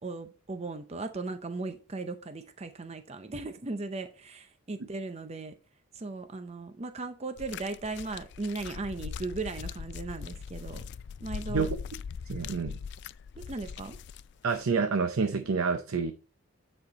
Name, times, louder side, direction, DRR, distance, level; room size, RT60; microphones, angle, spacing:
voice 1, 0.0-5.6 5.9-10.8 11.2-11.7 13.4-14.0, right 3 dB, 30° right, 0.6 m, -37 dB
sound 1, 7.4-14.6 15.4-15.5, left 6 dB, 55° left, 0.3 m, -41 dB
voice 2, 12.3-12.8 14.4-16.1, right 5 dB, 85° right, 0.7 m, -28 dB
9.7 x 4.4 x 4.2 m
head